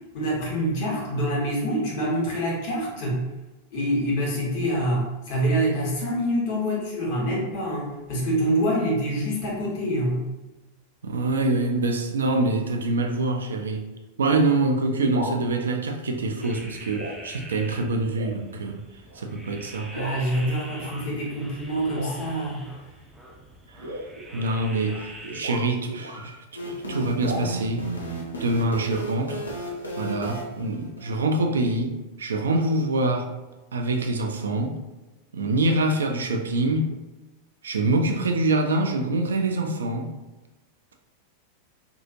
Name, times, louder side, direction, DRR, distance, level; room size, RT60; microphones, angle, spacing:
voice 1, 0.1-3.2 3.7-10.2 19.9-22.7, equal, 45° left, -4 dB, 1.0 m, -26 dB
voice 2, 11.0-13.9 14.2-18.8 19.2-19.9 23.7-24.0 24.3-27.9 28.4-29.4 30.0-33.3 33.7-34.8 35.3-36.9 37.6-40.2, right 2 dB, 70° right, 4 dB, 0.3 m, -25 dB
sound 1, 15.0-15.4 16.3-16.6 16.9-17.2 17.6-17.7 18.1-18.4 19.1-19.2 19.9-20.2 20.8-21.0 21.9-22.4 23.7-26.3 27.2-27.4, right 1 dB, 85° right, 0.8 m, -36 dB
sound 2, 16.4-25.4, right 1 dB, 5° right, 0.5 m, -44 dB
sound 3, 26.6-31.2, right 1 dB, 80° left, 0.5 m, -34 dB
2.7 x 2.4 x 2.6 m, 1.1 s
figure-of-eight pair, 90°, 0 cm